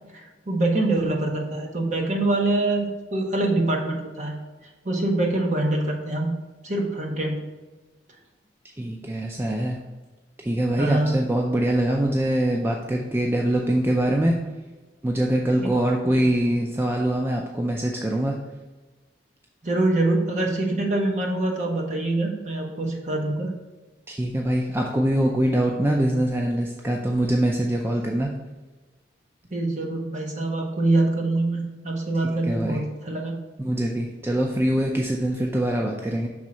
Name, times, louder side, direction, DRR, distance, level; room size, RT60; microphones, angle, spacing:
voice 1, 0.1-4.4 4.8-6.3 6.6-7.4 10.8-11.2 15.5-15.7 16.1-16.2 19.6-23.5 29.5-33.4, right 2 dB, 40° right, 1 dB, 1.0 m, -24 dB
voice 2, 8.8-9.8 10.4-14.3 15.0-18.4 24.1-28.3 32.2-32.8 33.6-36.3, right 1 dB, 15° right, 0 dB, 0.4 m, -23 dB
6.2 x 3.6 x 4.3 m, 1.2 s
head